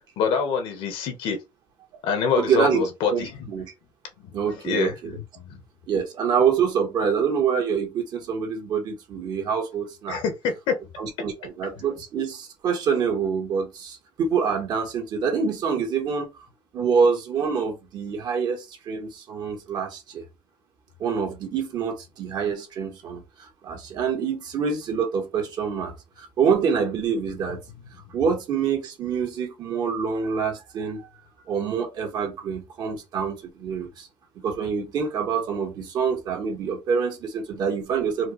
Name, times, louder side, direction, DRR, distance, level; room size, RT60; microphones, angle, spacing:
voice 1, 0.2-1.4 2.0-3.5 4.2-4.3 4.6-5.6 10.1-10.8, left 5 dB, 70° left, 1.1 m, -26 dB
voice 2, 2.3-2.8 3.1-3.7 4.3-5.2 5.9-10.2 11.0-16.4 16.7-20.2 21.0-27.6 28.1-34.1 34.4-38.3, right 6 dB, 45° right, 1.4 m, -26 dB
4.5 x 2.9 x 3.1 m
cardioid pair, 165°, 9 cm